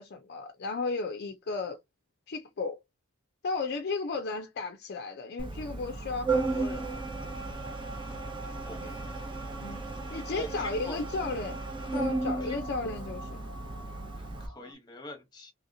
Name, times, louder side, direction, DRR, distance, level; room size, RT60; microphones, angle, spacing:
voice 1, 0.0-1.8 2.3-2.8 3.4-7.0 8.8-8.9 9.6-9.8 10.1-11.6 11.9-13.5, left 3 dB, 50° left, 0.4 m, -34 dB
Organ, 5.4-14.5, right 3 dB, 20° right, 0.6 m, -35 dB
sound 1, 5.8-14.7, right 1 dB, 60° right, 0.8 m, -48 dB
voice 2, 10.1-11.0 12.4-12.6 14.2-15.5, left 2 dB, 20° left, 1.0 m, -44 dB
3.1 x 2.8 x 2.6 m
head